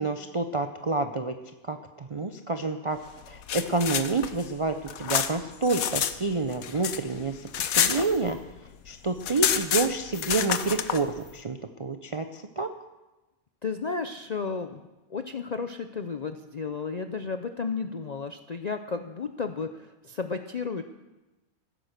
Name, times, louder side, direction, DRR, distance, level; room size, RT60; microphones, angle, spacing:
voice 1, 0.0-1.3 1.6-3.0 3.3-7.4 7.7-8.4 8.9-12.7, right 3 dB, 45° right, 6 dB, 0.4 m, -28 dB
sound 1, 3.2-6.1 6.4-8.6 8.9-9.0 9.2-11.0, left 9 dB, 75° left, 1.2 m, -28 dB
voice 2, 13.6-14.8 15.1-20.8, left 5 dB, 55° left, 8 dB, 0.4 m, -33 dB
16.0 x 10.0 x 6.7 m, 1.1 s
omnidirectional pair, 1.5 m